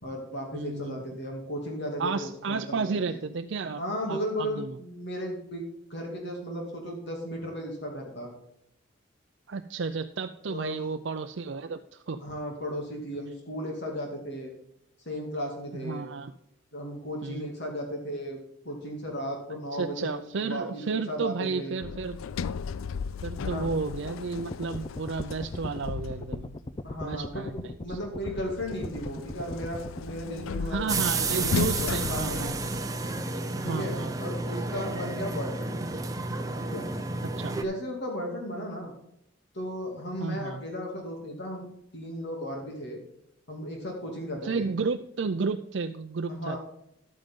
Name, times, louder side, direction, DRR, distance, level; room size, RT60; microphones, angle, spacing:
voice 1, 0.0-3.2 3.8-5.6 5.9-8.3 10.5-10.9 12.2-14.5 15.0-16.1 16.7-21.8 23.4-23.7 26.8-32.5 33.6-33.9 34.2-35.8 36.6-36.9 37.6-38.9 39.5-41.7 41.9-43.0 43.5-44.7 46.3-46.6, equal, 55° left, 1 dB, 2.6 m, -35 dB
voice 2, 0.5-1.0 2.0-3.8 4.1-4.8 9.5-12.2 15.7-16.3 17.2-17.5 19.7-22.2 23.2-26.5 27.0-28.0 30.7-32.5 33.6-34.1 37.2-37.6 40.2-40.6 44.4-46.6, right 4 dB, 60° right, 7 dB, 0.5 m, -32 dB
Sliding door, 21.8-26.7 28.2-33.2, left 6 dB, 80° left, 0.4 m, -36 dB
sound 1, 24.4-30.1, left 2 dB, 25° left, 0.5 m, -39 dB
sound 2, 30.9-37.6, right 3 dB, 15° right, 0.8 m, -31 dB
12.0 x 9.0 x 3.7 m, 0.78 s
head